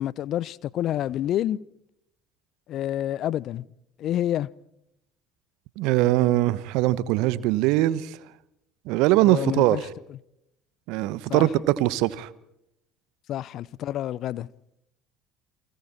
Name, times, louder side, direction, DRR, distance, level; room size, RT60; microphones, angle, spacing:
voice 1, 0.0-1.6 2.7-3.6 4.0-4.5 9.2-9.8 11.3-11.5 13.3-14.5, left 12 dB, 55° left, 0.7 m, -28 dB
voice 2, 5.8-8.1 8.9-9.8 10.9-12.3, right 16 dB, 65° right, 1.1 m, -22 dB
29.5 x 24.0 x 4.4 m
hypercardioid pair, 60°, 0 cm